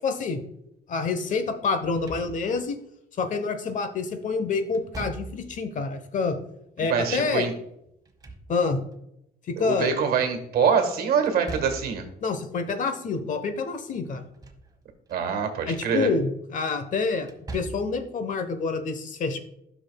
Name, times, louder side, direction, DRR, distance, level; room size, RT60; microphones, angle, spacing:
voice 1, 0.0-0.4 0.9-2.8 3.2-6.4 6.8-7.5 8.5-8.8 9.5-9.9 12.2-14.2 15.7-19.4, left 4 dB, 50° left, 8 dB, 1.1 m, -27 dB
Slam / Thump thud, 1.8-2.7 4.7-5.6 7.9-8.9 11.3-12.1 14.1-14.7 15.1-15.2 17.2-18.0, right 3 dB, 20° right, 1.3 m, -40 dB
voice 2, 6.8-7.5 9.6-12.1 15.1-16.1, right 6 dB, 65° right, 6 dB, 1.6 m, -24 dB
11.5 x 6.1 x 2.3 m, 0.78 s
cardioid pair, 110°, 17 cm